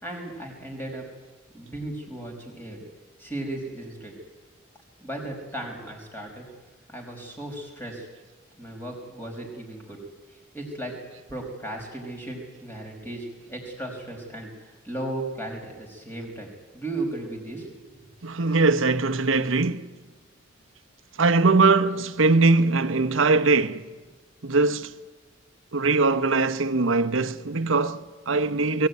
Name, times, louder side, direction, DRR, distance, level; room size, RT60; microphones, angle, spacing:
voice 1, 0.0-1.0 1.5-2.8 3.2-4.1 5.0-6.5 6.9-8.1 8.6-10.0 10.5-10.9 11.3-14.5 14.8-17.9, right 1 dB, 10° left, 5.1 m, -35 dB
voice 2, 18.2-20.0 21.2-23.9 24.4-24.9 25.7-28.9, right 3 dB, 80° right, 1.0 m, -21 dB
22.0 x 16.5 x 9.4 m
head